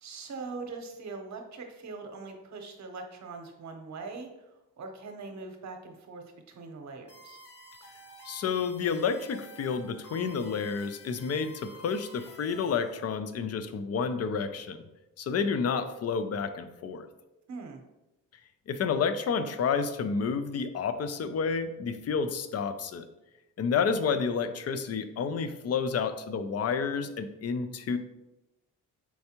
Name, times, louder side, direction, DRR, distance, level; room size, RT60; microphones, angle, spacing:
voice 1, 0.0-4.5 4.8-7.4 17.5-17.8, right 4 dB, 55° right, 4 dB, 0.9 m, -42 dB
sound 1, 7.1-13.0, equal, 65° left, 1.2 m, -51 dB
voice 2, 8.2-14.8 15.2-17.1 18.7-23.1 23.6-28.0, left 5 dB, 50° left, 11 dB, 0.5 m, -30 dB
4.6 x 3.4 x 2.8 m, 0.95 s
supercardioid pair, 60°, 33 cm